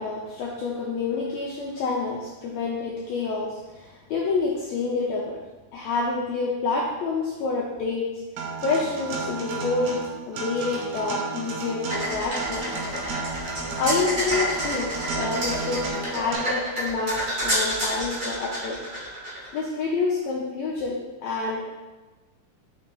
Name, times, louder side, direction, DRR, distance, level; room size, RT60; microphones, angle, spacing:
voice 1, 0.0-5.4 5.7-8.1 8.6-12.8 13.5-18.8 19.5-21.7, left 4 dB, 90° left, -3 dB, 1.5 m, -28 dB
Acoustic guitar, 8.4-16.4, right 4 dB, 85° right, 2.3 m, -32 dB
sound 1, 11.9-19.6, equal, 60° right, 0.8 m, -29 dB
5.4 x 3.8 x 2.3 m, 1.2 s
omnidirectional pair, 3.6 m